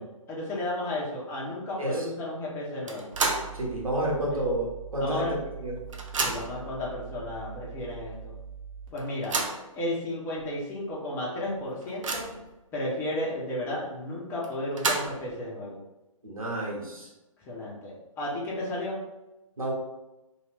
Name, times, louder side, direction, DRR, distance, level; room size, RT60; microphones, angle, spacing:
voice 1, 0.3-3.1 4.3-4.4 5.0-5.3 6.2-8.3 8.9-9.4 9.7-12.3 12.7-15.8 17.5-19.0, left 1 dB, 15° left, -5 dB, 0.6 m, -33 dB
sound 1, 2.9-3.6 4.0-4.1 5.2-5.3 5.5-6.7 7.4-7.5 7.9-8.0 9.0-9.7 10.4-10.5 10.9-11.0 11.5-12.5 14.4-15.3, right 3 dB, 65° right, 0.6 m, -31 dB
sound 2, 3.1-8.9, right 6 dB, 40° right, 1.0 m, -43 dB
voice 2, 3.5-5.2 5.6-5.7 16.2-17.1 19.6-19.7, right 1 dB, 80° right, -3 dB, 1.1 m, -30 dB
2.6 x 2.3 x 3.4 m, 1.0 s
figure-of-eight pair, 135°, 18 cm